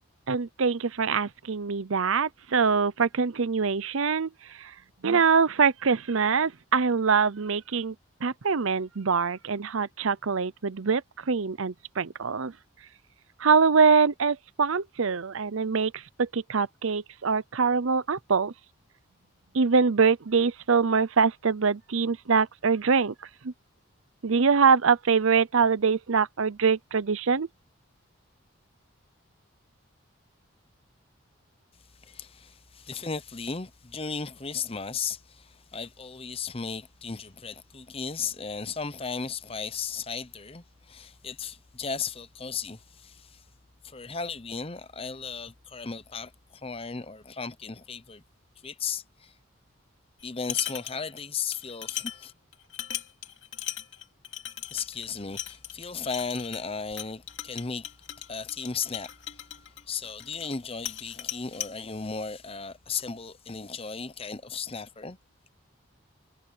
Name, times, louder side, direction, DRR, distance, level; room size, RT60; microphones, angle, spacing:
voice 1, 0.3-4.3 4.6-4.7 5.0-7.9 8.2-11.0 11.3-12.5 13.4-18.5 19.5-23.1 23.4-23.5 24.2-27.5, right 5 dB, 75° right, 0.7 m, -24 dB
voice 2, 32.0-43.4 43.8-48.2 48.6-49.3 50.2-52.3 54.7-57.9 58.3-59.4 59.9-65.2, left 5 dB, 25° left, 0.8 m, -35 dB
sound 1, 50.2-51.2 51.5-60.6 60.9-61.7, left 11 dB, 60° left, 2.7 m, -38 dB
head